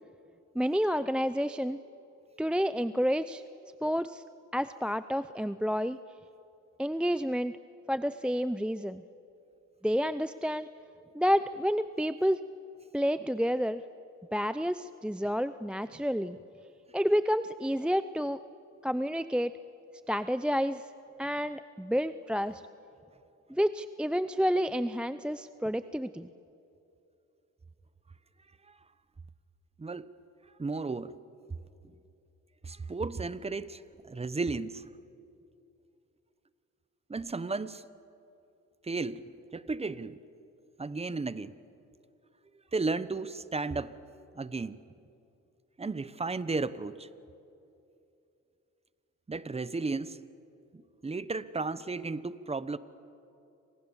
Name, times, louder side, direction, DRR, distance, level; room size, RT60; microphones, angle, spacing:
voice 1, 0.5-1.8 2.4-3.4 3.8-4.2 4.5-6.0 6.8-7.5 7.9-9.0 9.8-10.7 11.1-12.5 12.9-13.8 14.3-16.4 16.9-18.4 18.8-19.5 20.1-20.9 21.2-22.6 23.5-26.3, equal, 5° right, 0.6 m, -29 dB
voice 2, 29.8-30.1 30.6-31.2 32.6-34.9 37.1-37.8 38.8-40.2 40.8-41.5 42.7-43.9 44.3-44.8 45.8-47.1 49.3-50.2 50.7-52.8, right 3 dB, 20° right, 1.1 m, -34 dB
30.0 x 26.5 x 7.3 m
cardioid pair, 90°, 30 cm